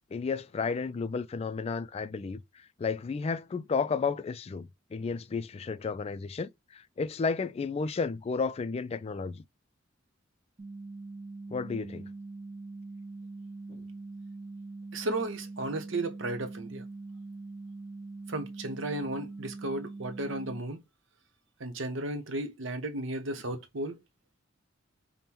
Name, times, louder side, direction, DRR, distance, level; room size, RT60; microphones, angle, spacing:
voice 1, 0.1-9.4 11.5-12.1 13.7-13.8, left 5 dB, 30° left, 0.3 m, -32 dB
sound 1, 10.6-20.6, right 3 dB, 30° right, 0.7 m, -43 dB
voice 2, 14.9-16.8 18.3-20.8 21.6-24.0, right 2 dB, 80° right, 0.8 m, -34 dB
5.3 x 2.1 x 2.9 m
head